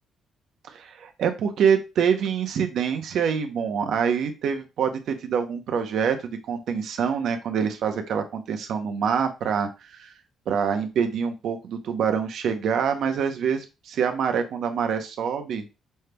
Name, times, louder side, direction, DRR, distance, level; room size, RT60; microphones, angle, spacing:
voice 1, 0.6-10.1 10.5-15.6, right 7 dB, 70° right, 6 dB, 0.7 m, -25 dB
5.4 x 3.3 x 2.2 m, 0.28 s
cardioid pair, 90°, 0 cm